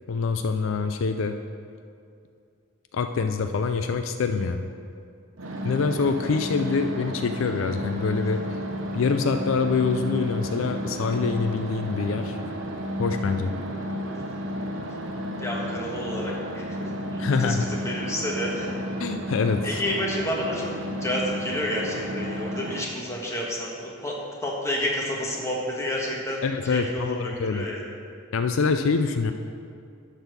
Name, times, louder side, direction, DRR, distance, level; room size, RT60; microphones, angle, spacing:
voice 1, 0.1-1.3 2.9-4.7 5.6-8.4 8.9-12.4 13.0-13.5 17.2-17.7 19.0-19.8 26.4-27.7 28.3-29.3, left 4 dB, 70° left, 7 dB, 0.4 m, -25 dB
sound 1, 5.4-22.8, equal, 70° right, 0.9 m, -32 dB
voice 2, 15.4-18.8 19.6-20.7 21.0-27.9, left 1 dB, 15° left, -3 dB, 1.3 m, -30 dB
11.5 x 4.1 x 6.7 m, 2.4 s
head